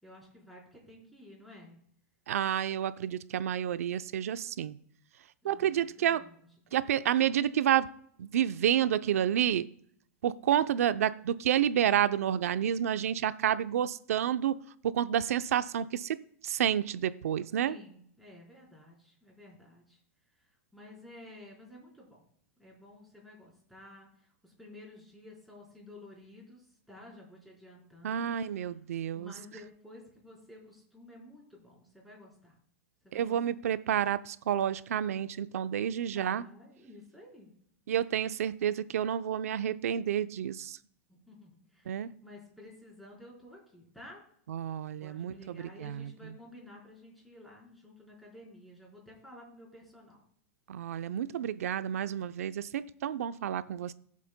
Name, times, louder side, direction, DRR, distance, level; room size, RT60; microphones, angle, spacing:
voice 1, 0.0-1.8 5.4-6.4 6.7-6.8 17.6-20.0 20.7-22.2 22.6-28.4 29.1-32.5 33.0-33.4 36.1-37.5 41.1-44.2 45.0-50.2, left 1 dB, ahead, -4 dB, 4.2 m, -52 dB
voice 2, 2.3-4.8 5.4-6.2 6.7-7.9 8.2-9.7 10.2-14.6 14.8-16.2 16.4-17.8 28.0-29.3 33.1-36.4 37.9-40.8 41.9-42.1 44.5-46.3 50.7-53.9, right 10 dB, 85° right, 13 dB, 0.6 m, -30 dB
20.5 x 7.4 x 2.2 m, 0.66 s
supercardioid pair, 135°, 8 cm